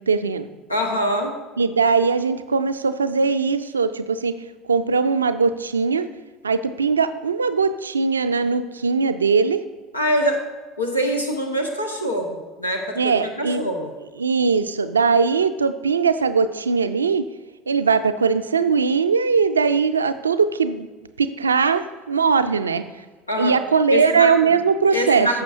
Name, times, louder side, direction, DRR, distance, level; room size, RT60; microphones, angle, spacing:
voice 1, 0.1-0.5 1.6-4.4 4.7-6.1 6.4-9.6 13.0-13.7 14.2-17.3 17.7-20.9 21.2-22.8 23.4-25.3, right 5 dB, 80° right, 11 dB, 0.4 m, -20 dB
voice 2, 0.7-1.3 9.9-10.4 10.8-13.9 23.3-23.5 23.9-24.6 24.9-25.4, equal, 90° left, 2 dB, 1.1 m, -24 dB
14.5 x 6.6 x 2.6 m, 1.3 s
figure-of-eight pair, 65°, 0 cm